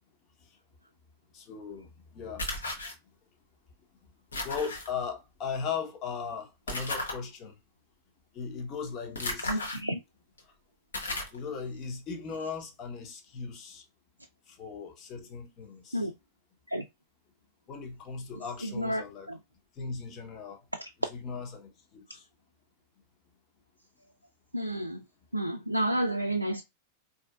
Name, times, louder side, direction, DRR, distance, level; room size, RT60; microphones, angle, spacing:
voice 1, 1.3-2.5 4.4-7.6 8.3-9.6 10.4-10.5 11.3-13.8 14.5-16.1 17.7-19.4 19.8-20.6 21.0-22.3, left 5 dB, 35° left, 0.9 m, -38 dB
sound 1, 2.4-2.9 4.3-4.9 6.7-7.2 9.2-9.8 10.4-10.5 10.9-11.4, left 2 dB, 75° left, 1.0 m, -34 dB
voice 2, 9.5-10.0 15.9-16.1 16.7-16.8 18.6-19.0 24.5-25.0 25.3-26.6, right 1 dB, 85° right, 0.3 m, -30 dB
4.3 x 2.8 x 2.3 m
figure-of-eight pair, 90°, 0 cm